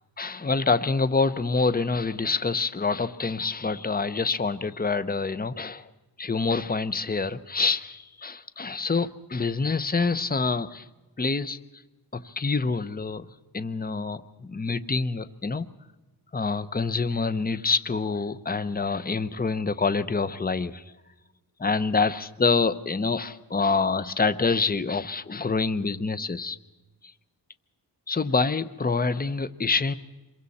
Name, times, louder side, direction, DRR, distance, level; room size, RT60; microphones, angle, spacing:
voice 1, 0.2-5.9 6.2-10.9 11.2-11.6 12.1-13.3 13.5-15.7 16.3-20.8 21.6-26.6 28.1-29.9, left 4 dB, 20° left, 15 dB, 0.9 m, -26 dB
27.5 x 23.0 x 4.2 m, 1.1 s
wide cardioid pair, 70°, 42 cm